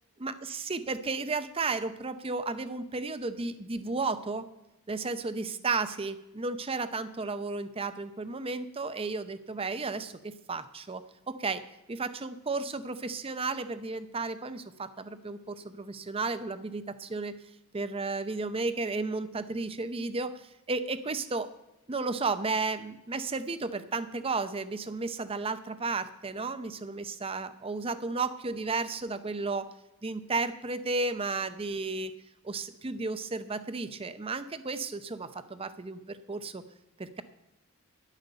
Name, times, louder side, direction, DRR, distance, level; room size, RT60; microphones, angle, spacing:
voice 1, 0.2-4.5 4.9-11.0 11.3-11.6 11.9-17.3 17.7-21.5 21.9-29.7 30.0-32.1 32.4-36.6 37.0-37.2, right 3 dB, 25° right, 13 dB, 0.6 m, -33 dB
10.0 x 9.1 x 7.0 m, 0.95 s
head